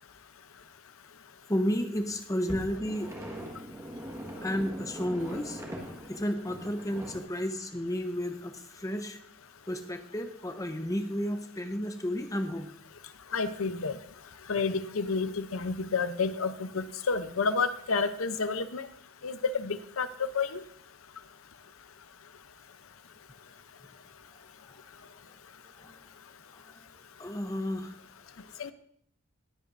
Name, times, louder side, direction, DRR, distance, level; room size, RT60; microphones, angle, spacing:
voice 1, 1.5-3.1 4.4-9.2 9.7-12.7 24.7-24.8 25.6-26.1 26.5-28.0, equal, 15° left, 7 dB, 0.8 m, -33 dB
sound 1, 2.5-7.2, right 1 dB, 15° right, 1.5 m, -41 dB
voice 2, 13.3-14.0 14.5-18.9 19.2-20.1 20.3-20.6 28.6-28.7, left 4 dB, 70° left, 12 dB, 0.7 m, -30 dB
20.0 x 8.4 x 2.6 m, 0.67 s
head